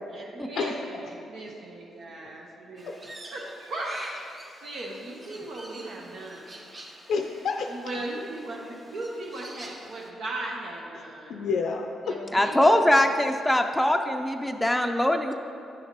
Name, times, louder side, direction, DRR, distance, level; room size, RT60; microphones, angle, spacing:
voice 1, 0.1-6.5 7.7-11.5 12.0-12.9 13.2-13.4 15.2-15.4, right 1 dB, 70° right, -2 dB, 1.0 m, -38 dB
Crow, 2.8-10.1, right 1 dB, 40° right, 1.1 m, -46 dB
voice 2, 7.1-7.7 11.3-12.2 12.6-12.7, left 5 dB, 70° left, 3 dB, 0.4 m, -29 dB
voice 3, 12.3-15.3, left 1 dB, 5° left, 4 dB, 0.5 m, -22 dB
9.8 x 6.4 x 3.0 m, 2.6 s
supercardioid pair, 50°, 0 cm